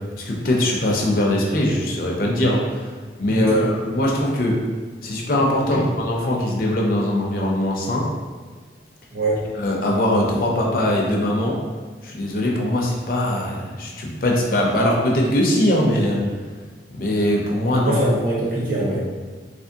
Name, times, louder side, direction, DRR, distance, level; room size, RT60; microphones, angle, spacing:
voice 1, 0.2-2.9 3.2-4.6 5.0-8.1 9.6-11.6 12.0-16.2 16.9-18.0, left 1 dB, 50° left, -1 dB, 0.5 m, -21 dB
voice 2, 3.3-3.7 5.7-5.8 9.1-9.4 17.8-19.0, right 1 dB, 50° right, -5 dB, 1.0 m, -23 dB
3.3 x 3.1 x 2.7 m, 1.5 s
head